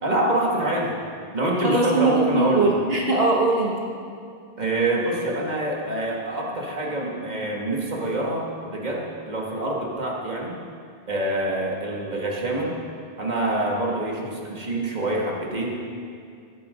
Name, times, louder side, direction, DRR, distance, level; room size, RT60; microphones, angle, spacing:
voice 1, 0.0-1.0 1.3-2.7 4.6-10.5 11.1-12.7 13.2-15.8, right 1 dB, 40° right, -2 dB, 2.3 m, -26 dB
voice 2, 1.6-3.8, right 2 dB, 65° right, -3 dB, 1.9 m, -21 dB
18.0 x 12.0 x 5.3 m, 2.3 s
omnidirectional pair, 1.1 m